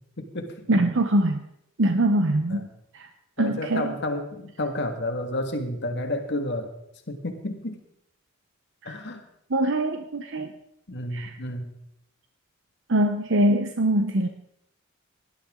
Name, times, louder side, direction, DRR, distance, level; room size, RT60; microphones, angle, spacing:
voice 1, 0.2-0.7 2.5-2.7 3.4-6.7 7.1-7.8 8.8-9.2 10.9-11.7, left 1 dB, 55° left, 5 dB, 1.7 m, -31 dB
voice 2, 0.7-1.4 1.8-2.7 2.9-3.1 3.4-3.9 8.8-9.0 9.5-10.5 11.1-11.3 12.9-14.3, right 1 dB, 65° right, 7 dB, 0.8 m, -23 dB
18.5 x 11.5 x 3.7 m, 0.78 s
head